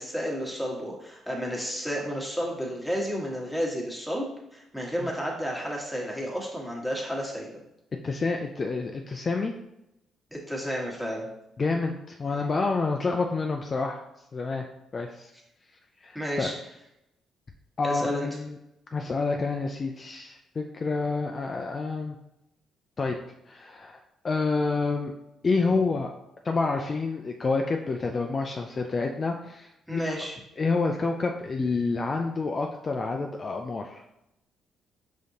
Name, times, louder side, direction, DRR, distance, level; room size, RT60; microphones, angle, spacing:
voice 1, 0.0-7.6 10.3-11.3 12.3-12.4 16.1-16.5 17.8-18.3 29.9-30.3, equal, ahead, -3 dB, 1.3 m, -31 dB
voice 2, 8.0-9.5 11.6-14.0 14.3-14.6 14.9-15.3 16.0-16.5 17.8-18.6 18.9-22.2 23.0-23.2 23.5-24.0 24.2-25.1 25.4-26.1 26.4-30.1 30.6-34.0, left 3 dB, 35° left, 2 dB, 0.4 m, -28 dB
5.2 x 3.7 x 2.8 m, 0.85 s
cardioid pair, 90°, 0 cm